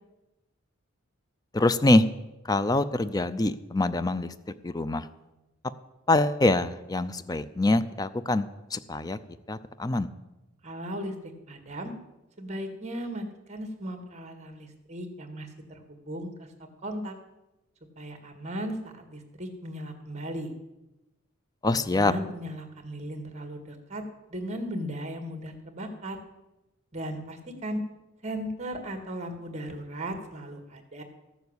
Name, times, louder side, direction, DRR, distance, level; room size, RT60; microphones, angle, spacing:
voice 1, 1.5-2.0 2.4-4.3 4.6-5.1 6.1-9.2 9.5-10.1 21.6-22.1, left 2 dB, 20° left, 14 dB, 0.5 m, -24 dB
voice 2, 10.6-11.9 12.4-16.3 16.8-17.1 18.0-20.5 21.7-24.0 24.3-26.2 26.9-27.8 28.2-31.0, equal, 35° right, 6 dB, 1.8 m, -37 dB
14.0 x 7.0 x 8.1 m, 0.99 s
head